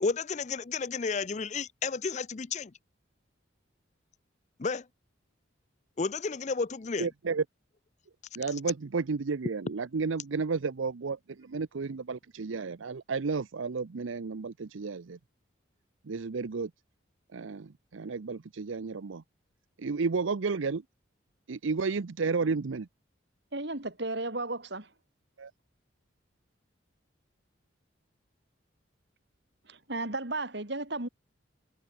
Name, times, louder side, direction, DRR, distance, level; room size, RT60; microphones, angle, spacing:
voice 1, 0.0-2.7 4.6-4.9 6.0-7.1, left 4 dB, 35° left, 0.5 m, -32 dB
voice 2, 7.0-7.4 8.4-15.2 16.0-16.7 17.3-19.2 19.8-20.8 21.5-22.9 25.4-25.5, right 4 dB, 80° right, 0.6 m, -32 dB
voice 3, 23.5-24.9 29.7-31.1, right 2 dB, 60° right, 2.8 m, -34 dB
head